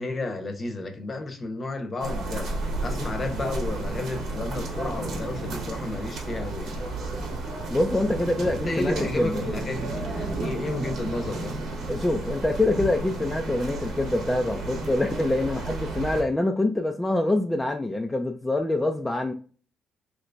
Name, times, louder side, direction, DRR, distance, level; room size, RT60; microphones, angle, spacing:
voice 1, 0.0-2.5 2.8-6.8 8.6-11.6, left 2 dB, 35° left, 0.8 m, -32 dB
sound 1, 2.0-16.2, right 2 dB, 75° right, 0.9 m, -32 dB
voice 2, 7.7-9.4 11.9-19.3, left 2 dB, 15° left, 0.4 m, -25 dB
2.9 x 2.6 x 3.3 m
cardioid pair, 90°, 0 cm